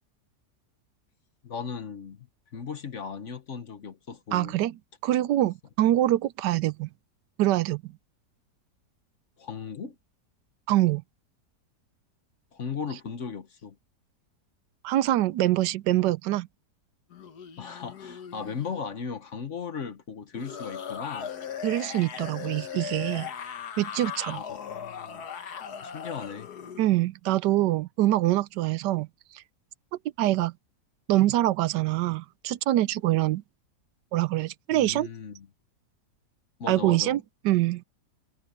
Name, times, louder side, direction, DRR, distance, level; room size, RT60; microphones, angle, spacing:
voice 1, 1.4-2.3 2.5-4.6 9.4-9.9 12.5-13.8 17.6-21.3 24.3-25.2 25.8-26.5 34.7-35.5 36.6-37.2, left 6 dB, 50° left, 1.3 m, -37 dB
voice 2, 4.3-4.8 5.0-6.9 7.4-7.8 10.7-11.0 14.8-16.5 21.6-23.3 23.8-24.4 26.8-29.1 30.2-30.5 31.1-33.4 34.1-35.1 36.7-37.8, right 15 dB, 85° right, 1.2 m, -24 dB
sound 1, 17.1-18.8 20.3-26.9, left 7 dB, 70° left, 1.8 m, -38 dB
omnidirectional pair, 1.8 m